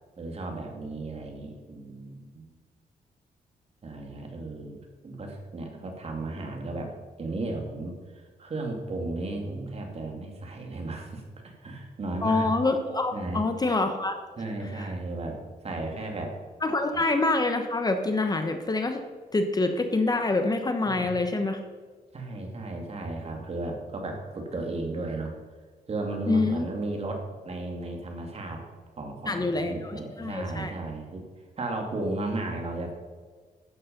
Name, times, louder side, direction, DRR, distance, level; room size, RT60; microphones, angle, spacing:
voice 1, 0.2-2.5 3.8-6.9 7.2-12.5 13.1-13.4 14.4-15.4 15.6-16.3 16.9-17.0 20.8-21.1 22.1-25.3 25.9-28.6 29.0-31.2 31.6-32.9, right 2 dB, 45° right, 2 dB, 2.5 m, -34 dB
voice 2, 12.2-14.2 14.8-14.9 16.6-19.0 19.3-21.6 26.3-26.7 29.3-30.7, left 3 dB, 25° left, 6 dB, 1.1 m, -26 dB
12.5 x 8.7 x 5.3 m, 1.4 s
cardioid pair, 115°, 15 cm